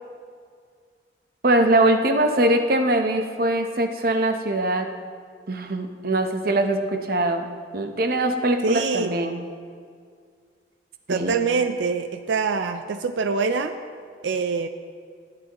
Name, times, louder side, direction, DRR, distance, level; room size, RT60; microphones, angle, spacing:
voice 1, 1.4-4.9 5.5-7.5 7.7-9.4 11.1-11.4, right 1 dB, 55° right, 6 dB, 0.8 m, -22 dB
voice 2, 8.6-9.1 11.1-13.7 14.2-14.7, right 4 dB, 90° right, 8 dB, 0.5 m, -24 dB
19.0 x 8.8 x 3.0 m, 2.1 s
head